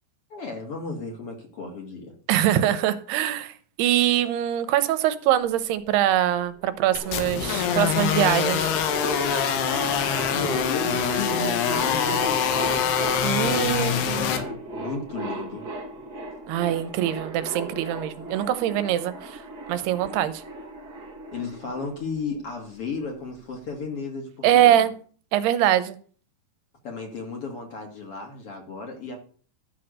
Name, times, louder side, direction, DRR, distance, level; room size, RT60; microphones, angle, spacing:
voice 1, 0.3-2.1 10.3-12.9 13.2-15.7 21.3-24.9 26.8-29.2, left 4 dB, 40° left, 2 dB, 2.5 m, -34 dB
voice 2, 2.3-8.7 13.2-14.4 16.5-19.4 19.7-20.4 24.4-24.9 25.3-26.0, right 12 dB, 90° right, 12 dB, 2.9 m, -23 dB
sound 1, 6.6-22.5, right 2 dB, 40° right, 1.5 m, -36 dB
sound 2, 7.0-14.4, left 8 dB, 80° left, 3.4 m, -24 dB
12.5 x 6.1 x 6.5 m, 0.43 s
omnidirectional pair, 4.6 m